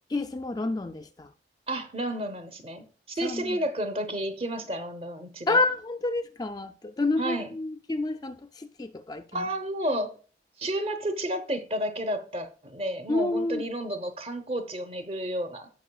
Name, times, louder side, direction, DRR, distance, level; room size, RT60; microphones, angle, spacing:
voice 1, 0.1-1.3 3.2-3.6 5.5-9.5 13.1-13.7, left 2 dB, 20° left, 0.3 m, -29 dB
voice 2, 1.7-5.6 7.2-7.5 9.3-10.2 10.6-15.7, right 1 dB, 35° right, 0.9 m, -31 dB
16.0 x 5.4 x 2.3 m
head